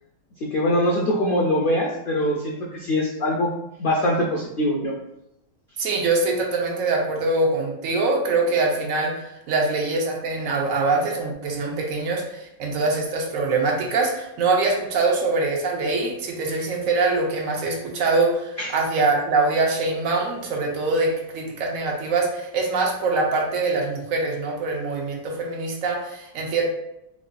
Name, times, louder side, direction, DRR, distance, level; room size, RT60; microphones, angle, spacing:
voice 1, 0.4-3.5 3.8-4.9 18.6-18.7, left 1 dB, 85° left, -2 dB, 0.4 m, -23 dB
voice 2, 5.8-26.6, right 3 dB, 70° right, 0 dB, 1.0 m, -23 dB
4.6 x 2.4 x 2.2 m, 0.84 s
omnidirectional pair, 1.6 m